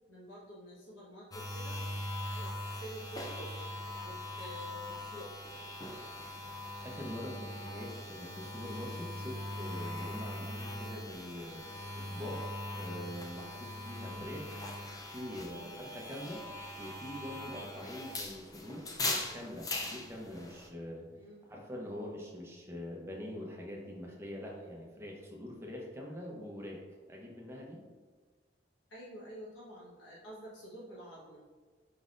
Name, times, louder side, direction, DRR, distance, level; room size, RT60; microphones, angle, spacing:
voice 1, 0.1-1.8 2.3-3.5 4.0-5.3 14.1-14.3 15.5-15.8 17.5-17.7 21.2-21.5 28.9-31.4, equal, 75° left, -7 dB, 1.2 m, -49 dB
sound 1, 1.3-20.7, left 1 dB, 20° left, 0.4 m, -41 dB
voice 2, 6.8-11.6 11.9-12.5 12.7-14.6 15.1-16.4 16.8-21.1 21.5-26.8 27.1-27.8, left 1 dB, 15° right, -2 dB, 0.7 m, -44 dB
5.0 x 3.9 x 2.5 m, 1.4 s
head